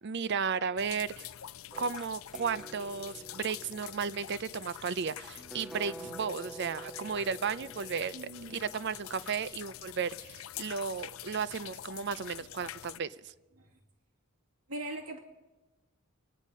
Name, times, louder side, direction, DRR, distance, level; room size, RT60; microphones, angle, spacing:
voice 1, 0.0-1.3 1.8-13.3, right 6 dB, 55° right, 16 dB, 0.5 m, -34 dB
sound 1, 0.8-13.0, left 12 dB, 75° left, 0.5 m, -46 dB
sound 2, 1.7-9.4, right 1 dB, ahead, 0.6 m, -49 dB
voice 2, 8.1-8.7 13.6-13.8 14.7-15.2, right 1 dB, 90° right, 1 dB, 2.3 m, -41 dB
26.0 x 10.0 x 5.5 m, 1.1 s
head